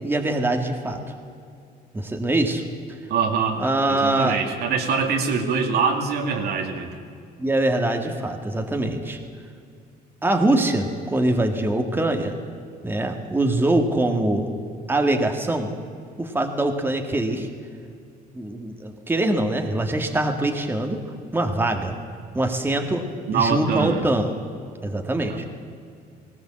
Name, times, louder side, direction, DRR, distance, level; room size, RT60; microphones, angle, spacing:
voice 1, 0.0-1.0 1.9-2.6 3.6-4.4 7.4-9.2 10.2-12.4 12.8-14.5 14.9-15.7 16.2-17.5 18.4-21.0 21.3-21.9 22.3-23.1 23.3-24.3 24.8-25.4, right 1 dB, 10° right, 4 dB, 1.9 m, -23 dB
voice 2, 3.1-3.6 3.9-6.9 23.3-24.0 25.2-25.4, right 5 dB, 70° right, 3 dB, 2.6 m, -24 dB
18.5 x 18.5 x 7.7 m, 2.4 s
cardioid pair, 110°, 17 cm